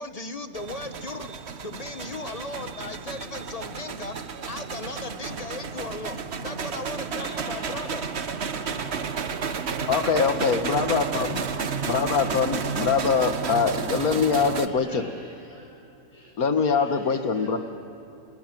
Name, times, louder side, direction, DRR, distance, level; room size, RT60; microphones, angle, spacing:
voice 1, 0.0-1.3 1.6-4.2 4.5-8.0 10.8-11.0, left 2 dB, 30° left, 9 dB, 1.1 m, -37 dB
sound 1, 0.5-14.7, right 6 dB, 50° right, 1.2 m, -32 dB
voice 2, 7.1-10.2 10.6-13.6 13.8-14.1 14.5-15.6 16.1-16.3 16.5-17.5, equal, 15° right, -5 dB, 6.7 m, -48 dB
voice 3, 9.9-11.4 11.9-15.1 16.4-17.6, left 5 dB, 80° left, 8 dB, 2.0 m, -23 dB
28.5 x 21.0 x 9.2 m, 2.8 s
omnidirectional pair, 1.5 m